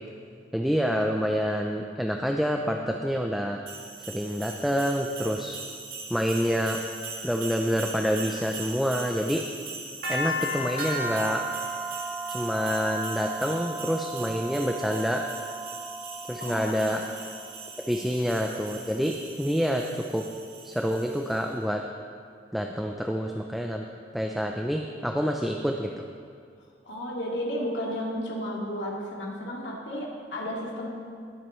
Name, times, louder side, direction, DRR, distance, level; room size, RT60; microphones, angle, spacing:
voice 1, 0.5-3.6 4.1-5.6 6.1-6.8 7.2-9.4 10.1-11.4 12.3-15.3 16.3-17.0 17.9-20.2 20.6-21.8 22.5-23.8 24.1-26.0, equal, ahead, 1 dB, 0.5 m, -27 dB
sound 1, 3.7-21.4, right 2 dB, 60° right, 2.2 m, -36 dB
voice 2, 16.4-17.0 18.0-18.1 26.9-30.9, equal, 80° left, -3 dB, 2.2 m, -33 dB
20.5 x 7.8 x 3.1 m, 2.2 s
head